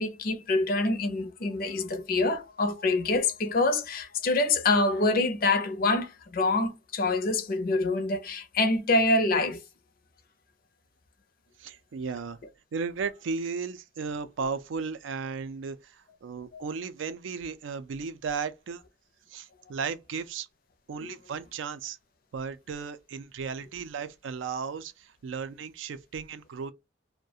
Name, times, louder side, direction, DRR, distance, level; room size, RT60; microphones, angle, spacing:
voice 1, 0.0-9.6 16.5-16.6 21.0-21.1, left 2 dB, 50° left, 0.5 m, -26 dB
voice 2, 11.6-12.4 12.7-15.8 16.2-18.8 19.3-20.5 20.9-22.0 22.3-26.7, right 5 dB, 85° right, 0.4 m, -35 dB
2.3 x 2.1 x 2.6 m
head